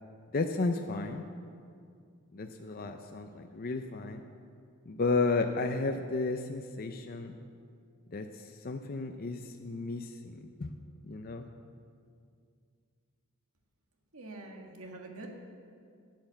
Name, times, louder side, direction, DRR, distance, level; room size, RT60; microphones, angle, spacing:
voice 1, 0.3-1.3 2.3-4.2 4.9-7.4 8.1-10.8 11.0-11.5, left 3 dB, 40° left, 5 dB, 0.5 m, -33 dB
voice 2, 14.1-15.3, right 2 dB, 70° right, 2 dB, 1.8 m, -45 dB
11.5 x 9.4 x 7.8 m, 2.3 s
head